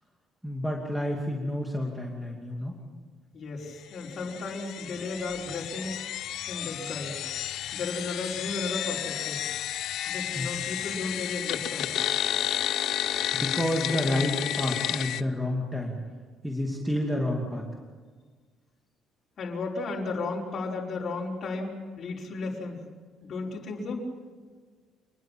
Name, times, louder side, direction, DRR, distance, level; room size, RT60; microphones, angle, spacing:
voice 1, 0.4-2.7 10.4-10.5 13.3-16.0 16.4-17.6, left 1 dB, 5° right, 0 dB, 2.6 m, -29 dB
voice 2, 3.3-6.0 6.5-7.4 7.7-9.4 10.1-11.9 19.4-22.8 23.2-24.0, left 3 dB, 40° left, -4 dB, 5.2 m, -34 dB
sound 1, 4.0-15.2, left 12 dB, 65° left, 0.8 m, -32 dB
27.5 x 21.0 x 7.5 m, 1.5 s
cardioid pair, 150°, 0 cm